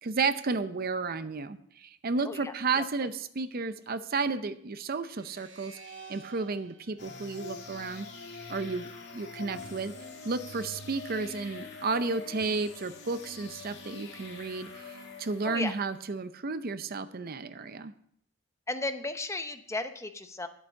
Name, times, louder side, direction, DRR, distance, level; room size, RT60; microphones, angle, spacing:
voice 1, 0.0-5.8 6.1-8.1 8.5-9.9 10.2-14.9 15.2-17.9, right 4 dB, 45° right, 12 dB, 0.6 m, -32 dB
sound 1, 5.1-8.4, right 4 dB, 65° right, 2.3 m, -51 dB
sound 2, 7.0-15.9, left 3 dB, 60° left, 2.2 m, -44 dB
voice 2, 18.7-20.5, left 2 dB, 15° left, 9 dB, 0.7 m, -34 dB
11.5 x 8.1 x 6.4 m, 0.67 s
head